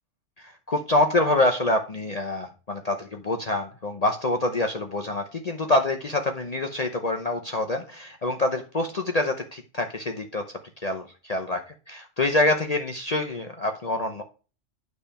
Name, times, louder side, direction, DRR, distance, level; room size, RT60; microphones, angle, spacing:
voice 1, 0.4-10.4 10.8-14.2, left 2 dB, 40° left, 4 dB, 0.8 m, -26 dB
9.5 x 3.4 x 5.7 m, 0.34 s
omnidirectional pair, 1.2 m